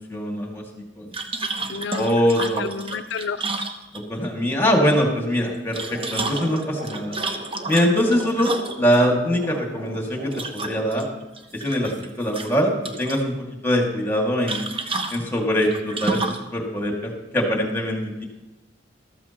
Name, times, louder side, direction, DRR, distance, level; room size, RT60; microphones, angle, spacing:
voice 1, 0.1-0.6 1.0-1.1 2.0-2.7 3.9-7.1 7.7-11.1 11.5-13.3 13.6-14.7 15.1-18.2, equal, 10° left, 0 dB, 2.2 m, -23 dB
sound 1, 1.1-4.3 5.5-9.0 10.3-11.0 11.4-12.1 12.3-13.2 14.5-16.5, right 3 dB, 30° right, 1.0 m, -30 dB
voice 2, 1.7-2.1 2.6-3.5, left 5 dB, 70° left, 14 dB, 0.5 m, -30 dB
sound 2, 5.8-10.9, right 2 dB, 55° right, 1.7 m, -38 dB
14.0 x 13.5 x 3.0 m, 1.1 s
head